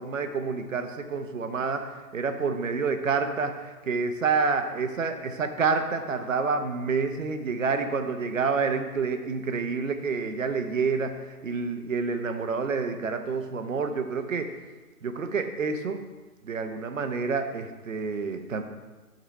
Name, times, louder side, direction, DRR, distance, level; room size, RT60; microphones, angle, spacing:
voice 1, 0.0-11.2 11.4-14.5 15.0-16.0 16.4-18.6, right 5 dB, 55° right, 7 dB, 0.8 m, -28 dB
7.8 x 3.9 x 5.5 m, 1.3 s
figure-of-eight pair, 150°, 46 cm